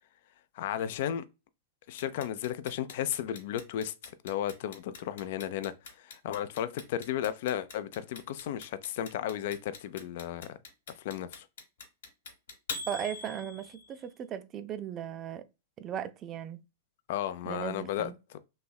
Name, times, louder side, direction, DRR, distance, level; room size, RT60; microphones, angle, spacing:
voice 1, 0.5-1.2 1.9-10.6 11.0-11.5 17.1-18.4, left 10 dB, 60° left, 0.3 m, -34 dB
Clock, 2.0-14.0, left 4 dB, 75° left, 1.0 m, -42 dB
voice 2, 12.9-15.5 15.8-16.6 17.5-18.1, right 9 dB, 30° right, 0.3 m, -37 dB
3.1 x 2.6 x 2.2 m
hypercardioid pair, 105°, 0 cm